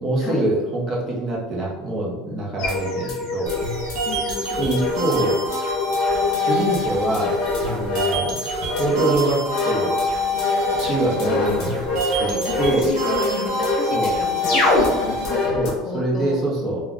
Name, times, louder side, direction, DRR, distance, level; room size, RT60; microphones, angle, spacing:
voice 1, 0.0-3.5 4.5-5.4 6.4-7.3 7.6-8.4 8.7-9.9 10.8-11.9 12.2-12.3 12.6-12.9 13.9-14.1 15.5-16.8, right 2 dB, 25° right, -3 dB, 0.7 m, -24 dB
sound 1, 2.6-15.7, left 3 dB, 50° left, 0.9 m, -25 dB
sound 2, 3.5-15.5, left 1 dB, 60° right, 0.7 m, -27 dB
voice 2, 4.1-4.8 11.2-11.5 12.0-16.4, left 4 dB, 30° left, 0 dB, 0.4 m, -32 dB
2.2 x 2.2 x 3.6 m, 1.1 s
cardioid pair, 165°, 0 cm